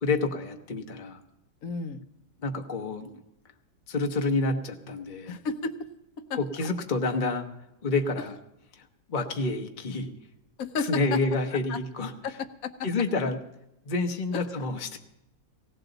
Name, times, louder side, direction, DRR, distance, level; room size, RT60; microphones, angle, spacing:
voice 1, 0.0-1.2 2.4-3.1 3.9-5.3 6.3-7.5 7.8-8.4 9.1-10.1 10.9-12.1 12.8-13.4 13.9-15.0, left 3 dB, 35° left, 4 dB, 0.9 m, -28 dB
voice 2, 1.6-2.0 5.3-5.9 6.3-6.4 10.6-11.2 11.7-11.8 12.2-12.9 14.3-14.4, left 5 dB, 60° left, 10 dB, 1.2 m, -32 dB
18.0 x 17.0 x 4.0 m, 0.86 s
omnidirectional pair, 1.9 m